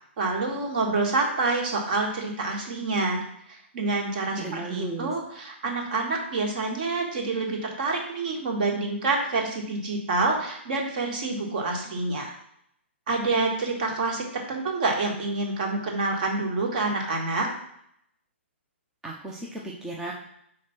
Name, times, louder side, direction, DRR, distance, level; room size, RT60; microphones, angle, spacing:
voice 1, 0.2-3.2 3.5-12.4 13.1-17.5, right 3 dB, 45° right, 1 dB, 1.8 m, -27 dB
voice 2, 4.4-5.1 19.0-20.1, right 2 dB, 5° right, -3 dB, 0.5 m, -35 dB
4.8 x 4.2 x 5.8 m, 0.72 s
hypercardioid pair, 165°, 7 cm